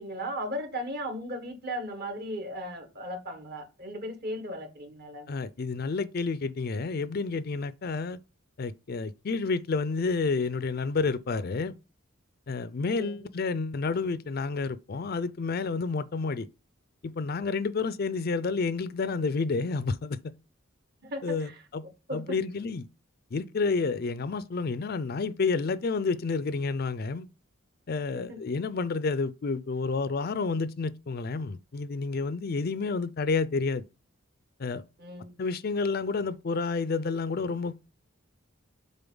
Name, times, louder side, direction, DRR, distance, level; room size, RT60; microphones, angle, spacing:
voice 1, 0.0-5.4 12.8-13.3 21.0-21.6 22.1-22.3 28.1-28.4 35.0-35.5, equal, 50° right, 1.5 m, -37 dB
voice 2, 5.3-8.2 8.6-11.7 12.5-16.5 17.0-20.3 21.2-21.8 22.1-22.9 23.3-27.3 27.9-33.8 34.6-34.8 35.4-37.8, left 4 dB, 50° left, 0.4 m, -30 dB
6.9 x 4.2 x 3.8 m
head